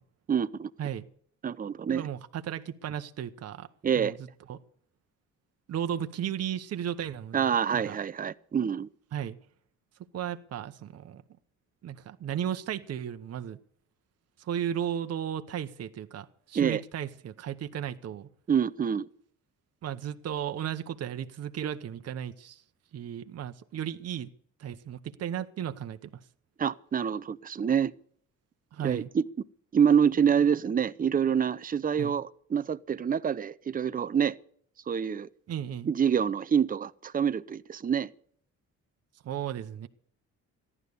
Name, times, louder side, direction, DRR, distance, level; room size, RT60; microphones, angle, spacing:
voice 1, 0.3-0.7 1.4-2.1 3.8-4.1 7.3-8.9 16.5-16.8 18.5-19.1 26.6-27.9 28.8-29.2 29.7-34.4 34.9-35.3 35.9-38.1, right 7 dB, 30° right, 0.6 m, -26 dB
voice 2, 1.9-3.7 3.9-4.6 5.7-8.0 9.1-9.4 10.1-11.2 11.8-13.6 14.4-18.3 19.8-22.6 22.9-24.3 24.6-26.1 28.7-29.1 32.0-32.2 35.5-35.9 39.2-39.9, right 9 dB, 55° right, 0.9 m, -35 dB
14.5 x 11.0 x 6.8 m
cardioid pair, 90°, 30 cm